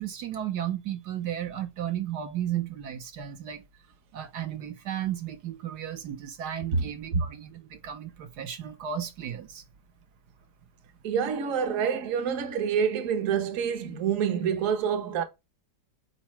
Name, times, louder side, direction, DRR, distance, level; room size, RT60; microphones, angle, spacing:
voice 1, 0.0-3.6 4.1-9.6, right 10 dB, 75° right, 1.3 m, -34 dB
voice 2, 6.7-7.2 11.0-15.2, right 7 dB, 55° right, 1.2 m, -27 dB
8.5 x 4.4 x 3.1 m
omnidirectional pair, 1.8 m